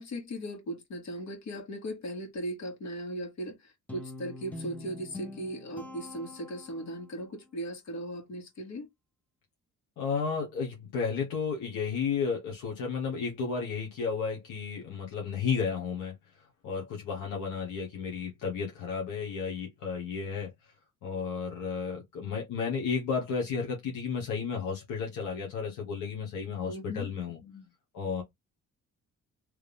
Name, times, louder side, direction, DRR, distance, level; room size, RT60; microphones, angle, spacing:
voice 1, 0.0-8.9 26.7-27.1 27.4-27.7, right 1 dB, 65° left, 2.0 m, -38 dB
Guitar, 3.9-7.2, left 1 dB, 5° left, 0.8 m, -44 dB
voice 2, 10.0-20.7 21.0-27.4 27.9-28.2, left 5 dB, 90° left, 1.3 m, -33 dB
3.3 x 2.5 x 3.5 m
cardioid pair, 90°, 30 cm